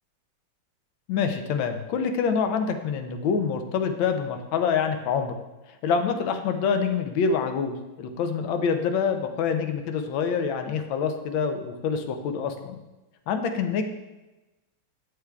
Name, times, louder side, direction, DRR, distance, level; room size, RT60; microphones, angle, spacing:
voice 1, 1.1-5.3 5.8-12.8 13.3-13.8, left 6 dB, 80° left, 7 dB, 1.4 m, -26 dB
8.2 x 7.8 x 2.3 m, 1.1 s
omnidirectional pair, 2.1 m